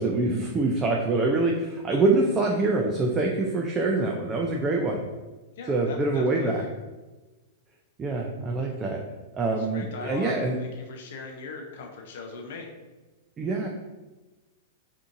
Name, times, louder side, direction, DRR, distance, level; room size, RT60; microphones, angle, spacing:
voice 1, 0.0-5.0 5.7-6.6 8.0-9.0 9.3-10.6 13.4-13.7, right 3 dB, 25° right, 0 dB, 0.3 m, -25 dB
voice 2, 5.6-6.7 9.5-12.7, left 4 dB, 65° left, 1 dB, 0.4 m, -39 dB
2.6 x 2.4 x 2.5 m, 1.2 s
hypercardioid pair, 115°, 0 cm